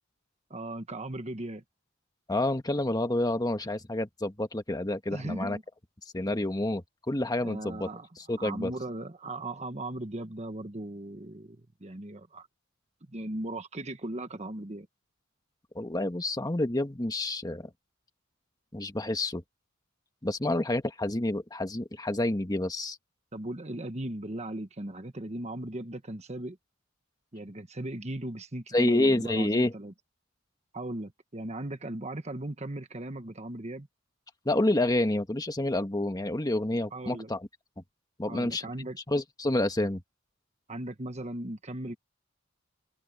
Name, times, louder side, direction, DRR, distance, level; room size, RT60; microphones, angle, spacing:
voice 1, 0.5-1.6 5.1-5.6 7.4-8.1 8.4-12.5 13.1-14.9 20.4-20.5 23.3-26.6 27.3-29.9 30.7-33.9 36.9-37.3 38.3-39.0 40.7-42.0, right 1 dB, 35° right, 1.4 m, -37 dB
voice 2, 2.3-5.6 6.1-7.9 8.2-8.7 15.7-17.7 18.7-19.4 20.2-23.0 28.7-29.7 34.4-37.5 38.2-38.6 39.1-40.0, left 1 dB, 20° left, 1.4 m, -28 dB
head